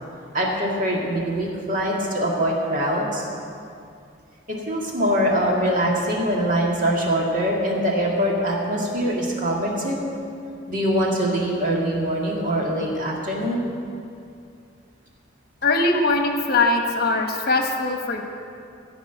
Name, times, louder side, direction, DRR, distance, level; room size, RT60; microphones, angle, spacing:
voice 1, 0.3-3.3 4.5-10.0 10.7-13.6, equal, 45° right, -2 dB, 2.2 m, -23 dB
voice 2, 15.6-18.2, left 3 dB, 55° left, 3 dB, 1.2 m, -21 dB
15.0 x 5.2 x 9.1 m, 2.5 s
head